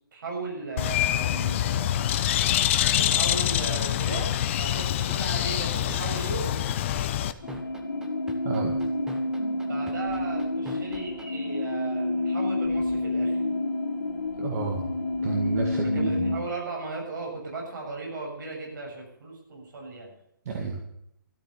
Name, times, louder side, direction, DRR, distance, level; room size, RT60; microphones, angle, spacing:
voice 1, 0.1-2.0 3.0-4.3 4.6-6.6 9.7-13.4 15.8-20.1, right 3 dB, 65° right, -1 dB, 7.1 m, -36 dB
Bird, 0.8-7.3, left 11 dB, 35° left, 0.7 m, -25 dB
sound 1, 5.1-11.2, right 1 dB, 5° right, 1.2 m, -42 dB
sound 2, 7.4-16.4, left 2 dB, 70° left, 2.6 m, -29 dB
voice 2, 8.5-8.8 14.4-14.8 15.2-16.1 20.5-20.8, right 5 dB, 45° right, 2 dB, 2.0 m, -30 dB
13.5 x 10.0 x 8.2 m, 0.76 s
hypercardioid pair, 145°, 11 cm